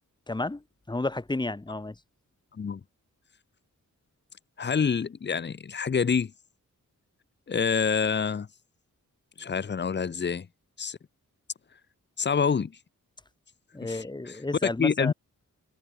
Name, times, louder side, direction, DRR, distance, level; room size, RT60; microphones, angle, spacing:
voice 1, 0.3-1.9 13.7-15.1, left 2 dB, 15° left, 1.1 m, -32 dB
voice 2, 4.6-6.3 7.5-8.5 9.4-10.5 10.8-11.0 12.2-12.7 13.8-15.1, left 6 dB, 35° left, 0.6 m, -27 dB
wide cardioid pair, 110°, 33 cm